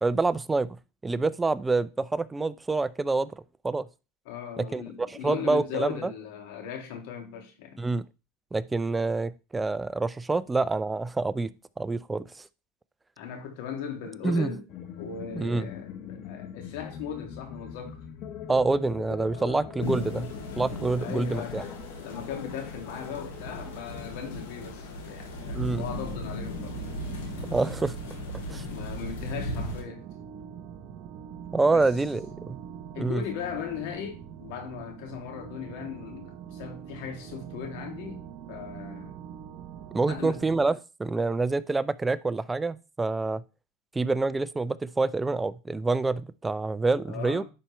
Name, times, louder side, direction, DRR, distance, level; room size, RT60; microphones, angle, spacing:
voice 1, 0.0-3.3 3.6-3.9 4.6-4.8 5.2-6.1 7.8-8.1 8.5-11.5 11.8-12.3 14.2-14.5 15.4-15.7 18.5-21.6 25.5-25.8 27.5-28.0 28.5-28.7 31.5-32.6 33.0-33.2 39.9-40.7 41.0-43.4 43.9-47.5, right 3 dB, 10° right, 0.4 m, -27 dB
voice 2, 4.3-7.8 13.2-14.7 15.0-18.0 19.3-19.7 21.0-26.8 28.7-30.1 31.7-31.9 32.9-39.2 40.1-40.6 47.1-47.5, left 7 dB, 65° left, 2.5 m, -38 dB
sound 1, 14.7-25.0, left 9 dB, 45° left, 1.1 m, -43 dB
sound 2, 19.8-29.8, left 1 dB, 90° left, 3.1 m, -37 dB
sound 3, 25.8-40.7, right 9 dB, 45° right, 0.9 m, -44 dB
10.5 x 4.3 x 3.3 m
supercardioid pair, 135°, 0 cm